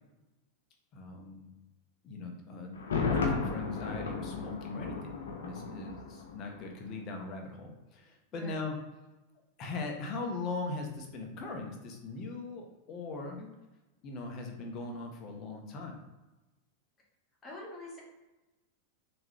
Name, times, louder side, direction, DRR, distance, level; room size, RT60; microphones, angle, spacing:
voice 1, 0.9-1.5 2.0-8.8 9.6-13.4 14.0-16.0, left 3 dB, 40° left, 2 dB, 0.9 m, -40 dB
Thunder, 2.7-6.7 6.9-7.0, left 4 dB, 85° left, 0.7 m, -34 dB
voice 2, 8.3-8.6 13.4-13.5 17.4-18.0, left 2 dB, 25° left, -3 dB, 1.4 m, -45 dB
3.6 x 3.0 x 3.2 m, 1.1 s
hypercardioid pair, 100°, 0 cm